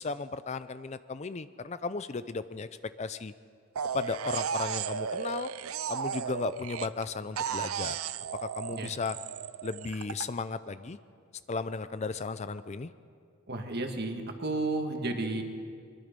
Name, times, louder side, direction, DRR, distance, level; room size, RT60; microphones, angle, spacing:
voice 1, 0.0-2.7 3.0-3.3 3.9-5.5 5.9-8.0 8.4-9.2 9.6-11.0 11.5-12.9, left 4 dB, 30° left, 13 dB, 0.4 m, -35 dB
sound 1, 3.8-7.0 7.4-10.2, right 7 dB, 75° right, 0.6 m, -34 dB
voice 2, 13.5-15.4, right 2 dB, 45° right, 4 dB, 1.8 m, -32 dB
23.0 x 22.0 x 5.3 m, 2.2 s
head